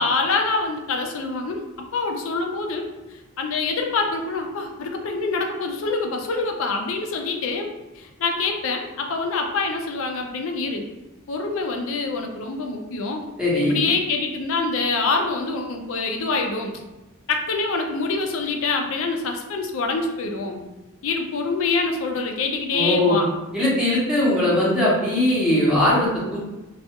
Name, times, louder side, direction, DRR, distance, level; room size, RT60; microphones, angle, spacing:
voice 1, 0.0-10.8 11.3-13.2 13.7-16.7 17.3-20.6 21.0-23.3, left 3 dB, 60° left, 3 dB, 0.4 m, -25 dB
voice 2, 13.4-13.8 22.7-23.2 23.5-26.4, left 1 dB, 5° right, -8 dB, 0.7 m, -20 dB
2.3 x 2.2 x 2.8 m, 1.1 s
head